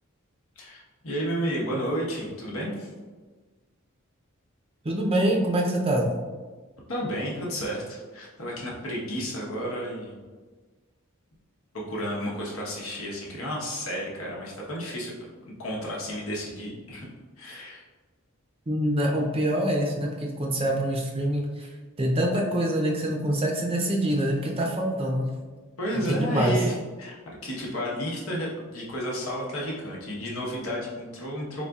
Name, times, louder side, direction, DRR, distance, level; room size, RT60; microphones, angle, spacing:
voice 1, 0.6-2.9 6.9-10.2 11.7-15.1 15.6-17.1 17.4-17.8 25.8-27.2 27.4-31.7, equal, 75° left, -3 dB, 1.1 m, -32 dB
voice 2, 4.8-6.1 18.7-21.7 22.0-25.2 26.1-26.6, right 1 dB, 30° right, 0 dB, 0.6 m, -25 dB
4.1 x 3.9 x 2.3 m, 1.3 s
head